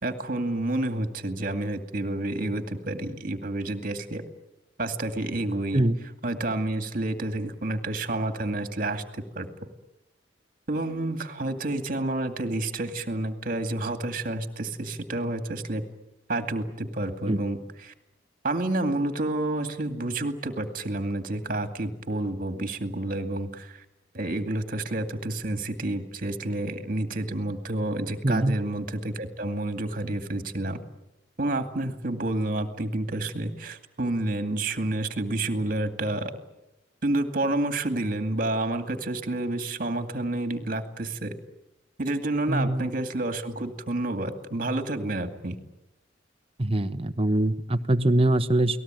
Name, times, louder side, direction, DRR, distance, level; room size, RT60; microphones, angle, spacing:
voice 1, 0.0-4.2 4.8-5.8 6.2-9.7 10.7-15.8 16.3-17.9 18.4-23.8 24.1-30.8 31.4-36.3 37.0-41.3 42.0-45.6, right 2 dB, 45° right, 7 dB, 2.3 m, -29 dB
voice 2, 28.2-28.6 42.5-42.9 46.6-48.8, right 1 dB, 30° right, 10 dB, 1.0 m, -23 dB
29.5 x 19.0 x 9.1 m, 0.93 s
head